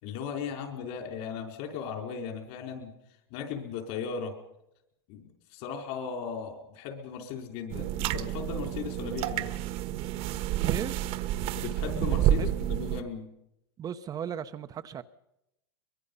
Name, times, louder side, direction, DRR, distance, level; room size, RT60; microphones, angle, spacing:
voice 1, 0.0-2.9 3.3-4.4 5.1-9.5 11.5-13.3, left 6 dB, 55° left, 4.8 m, -37 dB
sound 1, 7.7-13.0, right 12 dB, 45° right, 1.3 m, -29 dB
voice 2, 10.6-11.0 12.3-12.5 13.8-15.0, right 9 dB, 25° right, 0.8 m, -36 dB
23.5 x 22.5 x 5.6 m
hypercardioid pair, 120°, 14 cm